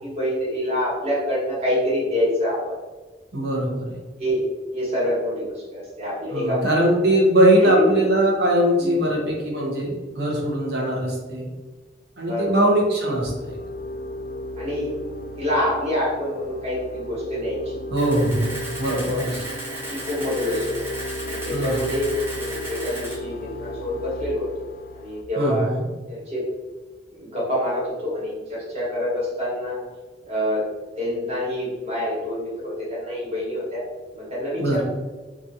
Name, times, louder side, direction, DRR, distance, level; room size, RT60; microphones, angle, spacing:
voice 1, 0.0-2.7 4.2-4.4 4.7-7.0 7.6-7.9 8.8-9.0 12.3-12.6 14.6-14.9 15.4-17.8 18.8-19.2 19.9-20.7 21.3-24.7 24.9-25.7 26.1-26.4 27.1-29.8 30.2-30.6 31.0-33.8 34.1-34.8, left 1 dB, 35° right, -7 dB, 1.3 m, -26 dB
voice 2, 3.3-3.9 6.3-11.5 12.2-13.6 17.9-19.4 21.5-21.9 25.4-25.9 34.6-34.8, right 1 dB, 65° right, -2 dB, 0.8 m, -21 dB
sound 1, 13.2-25.2, left 1 dB, 55° left, 0.3 m, -35 dB
Camera, 17.9-23.2, right 1 dB, 15° right, 0.6 m, -35 dB
2.9 x 2.5 x 2.7 m, 1.3 s
head